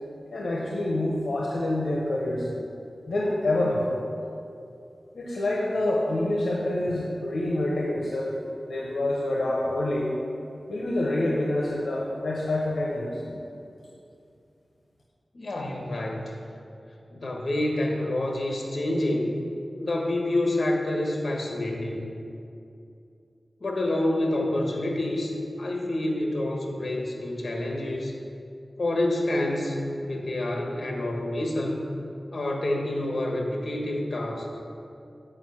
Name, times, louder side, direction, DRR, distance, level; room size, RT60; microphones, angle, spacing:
voice 1, 0.3-2.5 3.1-4.0 5.1-8.4 8.7-10.1 10.7-13.2, left 1 dB, 90° left, -3 dB, 0.9 m, -27 dB
voice 2, 15.3-16.3 17.1-19.3 19.8-22.1 23.6-28.1 28.8-31.8 32.3-34.5, left 1 dB, 65° left, 0 dB, 1.3 m, -28 dB
7.7 x 5.0 x 6.3 m, 2.6 s
wide cardioid pair, 65°, 0 cm